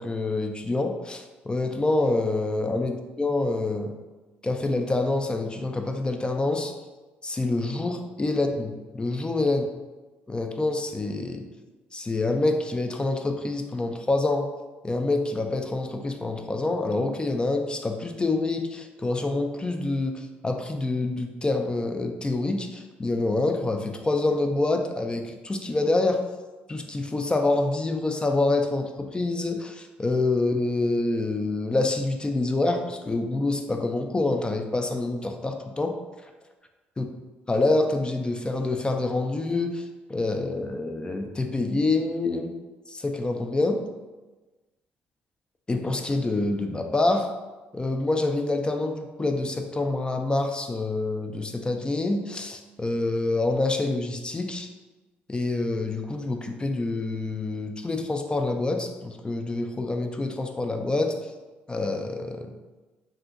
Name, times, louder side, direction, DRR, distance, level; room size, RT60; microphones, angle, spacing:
voice 1, 0.0-3.9 4.4-6.7 7.2-9.6 10.3-11.5 11.9-14.5 14.8-26.2 26.7-36.0 36.2-36.3 37.0-37.1 37.5-42.5 42.9-43.8 45.7-47.3 47.7-54.7 55.3-61.3 61.7-62.5, left 2 dB, 20° left, 5 dB, 0.3 m, -26 dB
2.7 x 2.6 x 2.4 m, 1.2 s
supercardioid pair, 70°, 5 cm